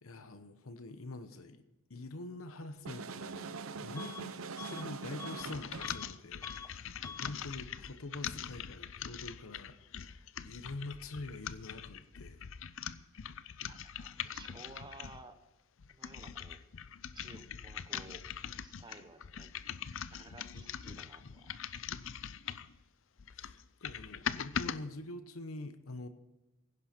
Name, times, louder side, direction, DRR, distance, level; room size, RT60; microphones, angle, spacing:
voice 1, 0.0-1.6 1.9-12.4 23.3-26.1, left 2 dB, 80° left, 10 dB, 1.0 m, -46 dB
sound 1, 2.8-6.0, right 4 dB, 75° right, 0.8 m, -43 dB
Bus / Alarm, 4.0-4.3 4.6-6.1 6.4-6.7 7.0-7.4, left 5 dB, 15° left, 0.9 m, -47 dB
sound 2, 5.4-15.3 15.8-22.8 23.2-24.8, left 8 dB, 65° left, 0.5 m, -42 dB
voice 2, 13.6-15.4 15.9-16.6 17.1-18.2 18.6-19.5 20.1-21.5 21.7-21.8, right 2 dB, 20° right, 8 dB, 1.2 m, -54 dB
16.5 x 11.0 x 4.4 m, 0.99 s
head